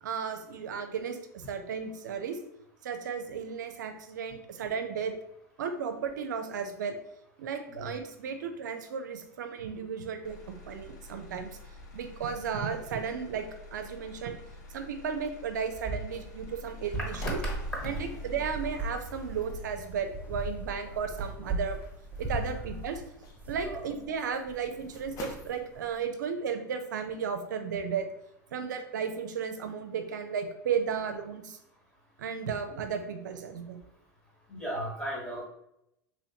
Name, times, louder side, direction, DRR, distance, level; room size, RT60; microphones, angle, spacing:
voice 1, 0.0-2.4 2.8-5.1 5.6-7.0 7.4-10.4 10.7-11.6 11.9-14.4 14.7-17.4 17.8-21.8 22.2-23.0 23.5-28.1 28.5-31.6 32.2-33.8, right 6 dB, 75° right, 7 dB, 0.5 m, -34 dB
Motor vehicle (road), 10.2-24.3 24.7-25.2, equal, 70° left, 0.9 m, -47 dB
sound 1, 16.1-26.1, right 1 dB, 35° left, 0.7 m, -43 dB
sound 2, 17.6-23.9, right 2 dB, 15° right, 0.5 m, -38 dB
voice 2, 34.5-35.4, equal, 10° left, -4 dB, 1.3 m, -36 dB
3.1 x 3.0 x 2.8 m, 0.79 s
hypercardioid pair, 90°, 10 cm